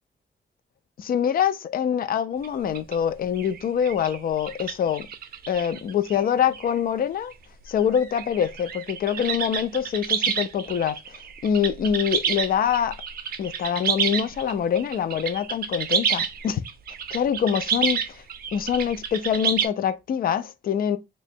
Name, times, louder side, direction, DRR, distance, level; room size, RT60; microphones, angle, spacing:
voice 1, 1.0-5.1 5.5-7.3 7.7-13.0 13.4-16.6 17.1-18.2 18.5-21.0, left 8 dB, 55° left, 0.4 m, -25 dB
sound 1, 2.4-2.5 2.7-3.0 3.4-6.2 6.5-6.8 7.3-7.4 7.8-19.7, right 7 dB, 60° right, 0.5 m, -29 dB
2.9 x 2.2 x 4.2 m
wide cardioid pair, 165°, 18 cm